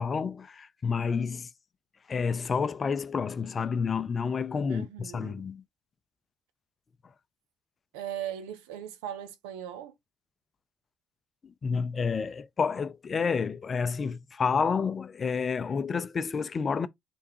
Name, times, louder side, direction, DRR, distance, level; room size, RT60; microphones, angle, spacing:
voice 1, 0.0-1.5 2.1-5.6 11.4-16.9, left 5 dB, 40° left, 0.4 m, -29 dB
voice 2, 4.7-5.5 7.9-9.9, right 10 dB, 80° right, 0.6 m, -39 dB
3.5 x 3.3 x 3.0 m
hypercardioid pair, 55°, 0 cm